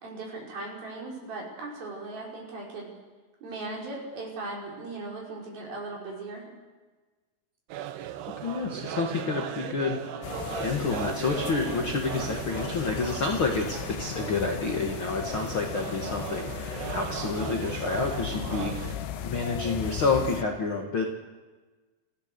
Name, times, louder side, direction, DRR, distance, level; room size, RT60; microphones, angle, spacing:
voice 1, 0.0-2.9 3.4-6.5, right 2 dB, 60° right, -3 dB, 7.0 m, -38 dB
sound 1, 7.7-19.0, right 10 dB, 75° right, 2.9 m, -38 dB
voice 2, 8.4-21.0, left 4 dB, 55° left, 2 dB, 1.4 m, -29 dB
sound 2, 10.2-20.4, left 9 dB, 75° left, 3.1 m, -36 dB
28.0 x 15.5 x 6.9 m, 1.3 s
omnidirectional pair, 4.9 m